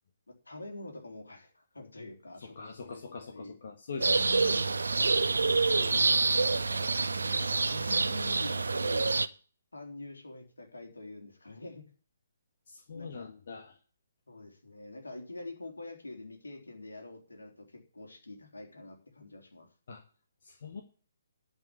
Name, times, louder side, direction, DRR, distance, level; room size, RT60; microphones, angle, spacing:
voice 1, 0.5-3.5 5.1-6.1 6.7-6.8 7.1-9.1 9.7-11.9 12.9-13.3 14.3-19.7, left 2 dB, 75° left, 4 dB, 3.6 m, -46 dB
voice 2, 2.4-4.7 6.5-6.7 12.7-13.7 19.9-20.0 20.4-20.8, left 5 dB, 50° left, 4 dB, 1.7 m, -43 dB
sound 1, 4.0-9.3, right 3 dB, 70° right, 0.7 m, -27 dB
11.5 x 5.7 x 8.4 m, 0.40 s
figure-of-eight pair, 135°, 0 cm